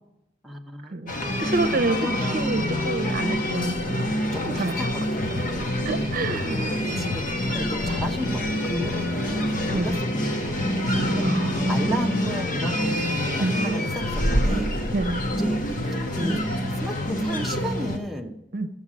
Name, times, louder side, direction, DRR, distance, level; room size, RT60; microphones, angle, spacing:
voice 1, 0.4-0.9 2.0-2.5 4.3-5.7 6.4-14.8 15.4-18.4, equal, ahead, 0 dB, 0.9 m, -34 dB
sound 1, 1.1-18.0, equal, 45° left, 1.3 m, -26 dB
voice 2, 1.4-2.0 2.3-4.1 4.6-4.9 5.3-5.4 5.8-6.6 6.9-7.0 9.7-10.0 11.2-11.8 13.4-13.6 14.9-15.2 18.5-18.7, right 2 dB, 50° right, 9 dB, 0.8 m, -28 dB
13.0 x 7.3 x 6.2 m, 0.90 s
head